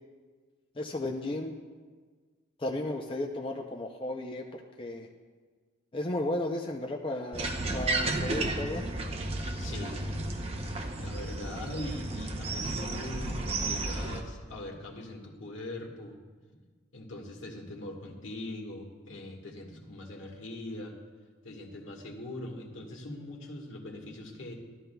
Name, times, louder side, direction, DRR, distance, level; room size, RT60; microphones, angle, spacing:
voice 1, 0.8-1.6 2.6-5.1 5.9-8.9, left 1 dB, 25° left, 1 dB, 0.5 m, -34 dB
sound 1, 7.3-14.2, right 2 dB, 30° right, 0.6 m, -33 dB
voice 2, 9.6-10.2 11.0-16.2 16.9-21.0 21.4-24.5, left 1 dB, 70° left, 0 dB, 1.5 m, -42 dB
13.5 x 12.5 x 2.3 m, 1.5 s
head